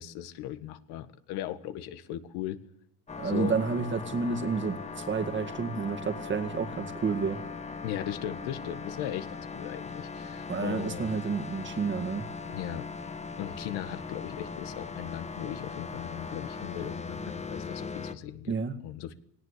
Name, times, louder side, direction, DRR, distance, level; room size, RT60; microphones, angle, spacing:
voice 1, 0.0-2.6 3.2-3.5 7.8-11.1 12.5-12.9 13.4-18.5 18.8-19.1, left 11 dB, 75° left, 10 dB, 1.7 m, -37 dB
sound 1, 3.1-18.1, left 4 dB, 15° left, 1.2 m, -39 dB
voice 2, 3.2-7.5 10.5-12.3 18.5-18.8, right 5 dB, 30° right, 8 dB, 2.2 m, -30 dB
18.5 x 18.0 x 8.6 m, 0.68 s
cardioid pair, 130°, 39 cm